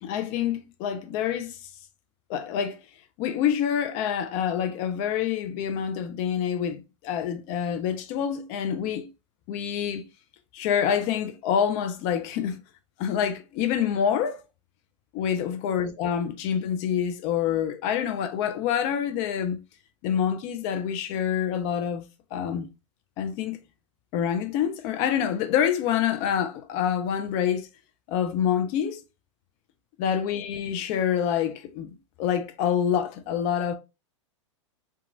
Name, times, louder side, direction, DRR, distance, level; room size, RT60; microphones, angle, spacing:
voice 1, 0.0-1.6 2.3-2.8 3.2-9.1 9.5-10.0 10.5-12.6 13.0-14.4 15.1-19.6 20.0-22.7 23.2-23.6 24.1-27.7 28.1-29.0 30.0-33.7, left 8 dB, 40° left, 0.4 m, -27 dB
2.9 x 2.3 x 2.6 m
hypercardioid pair, 110°, 16 cm